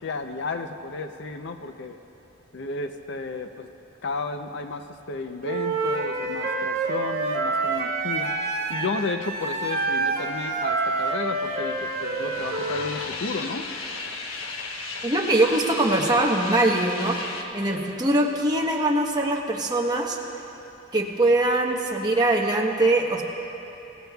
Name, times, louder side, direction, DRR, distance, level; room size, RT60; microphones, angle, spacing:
voice 1, 0.0-2.0 2.5-3.7 4.0-8.3 8.7-13.6, left 3 dB, 60° left, 7 dB, 0.6 m, -33 dB
Wind instrument woodwind instrument, 5.4-12.9, right 3 dB, 50° right, 1.8 m, -27 dB
sound 1, 10.3-17.4, left 3 dB, 85° left, 1.1 m, -36 dB
voice 2, 15.0-20.2 20.9-23.2, right 2 dB, 20° right, 0 dB, 1.1 m, -22 dB
25.0 x 15.5 x 2.3 m, 2.9 s
head